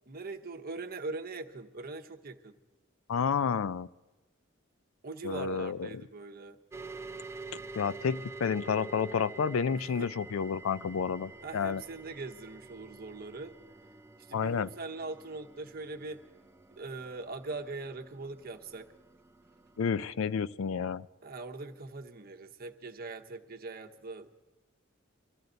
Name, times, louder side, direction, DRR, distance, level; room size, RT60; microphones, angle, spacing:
voice 1, 0.1-2.6 5.0-6.6 9.8-10.1 11.4-13.5 14.2-16.2 16.8-18.9 21.2-24.4, right 3 dB, 50° right, 5 dB, 1.0 m, -41 dB
voice 2, 3.1-3.9 5.2-5.9 7.8-11.8 14.3-14.7 19.8-21.1, left 6 dB, 75° left, 17 dB, 0.4 m, -30 dB
sound 1, 6.7-20.1, right 3 dB, 15° right, 0.5 m, -48 dB
23.5 x 13.5 x 4.0 m, 1.1 s
head